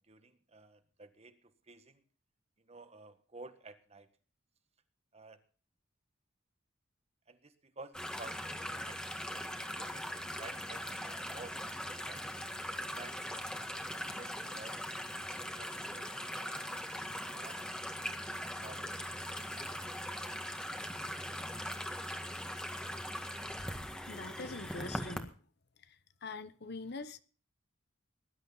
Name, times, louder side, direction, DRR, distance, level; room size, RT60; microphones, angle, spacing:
voice 1, 0.1-2.0 2.6-4.1 5.1-5.4 7.3-11.7 12.0-12.3 12.9-13.5 13.9-14.7 15.4-16.8 17.3-17.7 18.1-19.0, right 3 dB, 30° right, 1.5 m, -53 dB
sound 1, 7.9-25.2, equal, 5° left, 1.8 m, -40 dB
voice 2, 24.1-25.3 25.9-26.0 26.2-27.2, left 3 dB, 55° left, 1.0 m, -43 dB
19.5 x 11.5 x 4.0 m
head